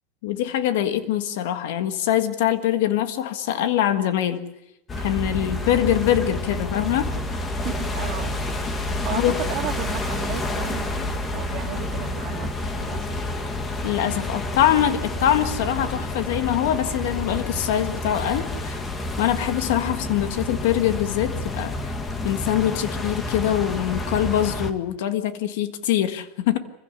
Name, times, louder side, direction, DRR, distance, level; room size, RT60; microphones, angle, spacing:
voice 1, 0.2-4.5 5.0-7.1 9.1-9.4 13.8-18.8 19.2-21.7 22.2-26.6, left 11 dB, 75° left, 8 dB, 1.7 m, -23 dB
sound 1, 4.9-24.7, left 2 dB, 20° left, 1.7 m, -29 dB
voice 2, 7.6-8.3 8.7-13.4, right 13 dB, 50° right, 3 dB, 2.7 m, -35 dB
25.0 x 16.0 x 8.2 m, 0.88 s
supercardioid pair, 145°, 0 cm